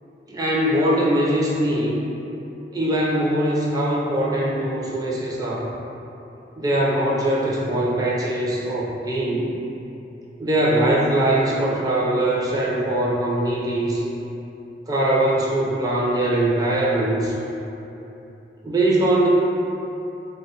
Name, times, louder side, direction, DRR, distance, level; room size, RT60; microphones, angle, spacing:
voice 1, 0.3-1.9 2.7-5.7 6.6-9.5 10.4-14.0 14.9-17.3 18.6-19.3, right 1 dB, 20° right, -5 dB, 0.4 m, -21 dB
3.0 x 2.2 x 2.8 m, 3.0 s
head